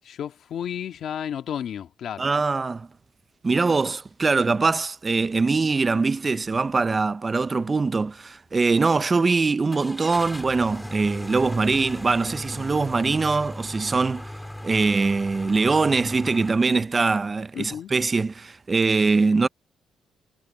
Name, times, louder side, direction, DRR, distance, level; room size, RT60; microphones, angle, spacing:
voice 1, 0.0-2.3 17.5-17.9, left 9 dB, 65° left, 1.8 m, -32 dB
voice 2, 2.2-2.9 3.4-14.3 14.6-19.5, right 4 dB, 30° right, 0.5 m, -22 dB
sound 1, 6.4-6.7 7.1-7.2 9.7-16.6, left 1 dB, 5° left, 3.4 m, -37 dB
cardioid pair, 90°, 0 cm